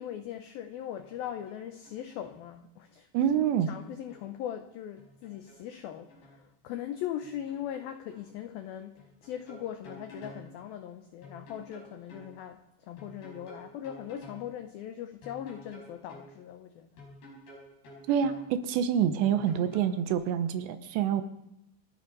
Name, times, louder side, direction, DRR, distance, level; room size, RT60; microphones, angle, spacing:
voice 1, 0.0-3.1 3.7-16.9, left 10 dB, 85° left, 7 dB, 2.1 m, -40 dB
sound 1, 1.0-1.6 1.8-2.4 3.2-4.3 5.0-6.4 7.2-8.2 9.0-10.4 11.2-12.3 13.0-14.4 15.2-16.3 17.0-18.4 19.2-20.1, equal, 60° left, 7.3 m, -50 dB
voice 2, 3.1-3.7 18.1-21.2, right 9 dB, 80° right, 10 dB, 3.0 m, -27 dB
29.0 x 10.0 x 4.1 m, 0.84 s
omnidirectional pair, 5.3 m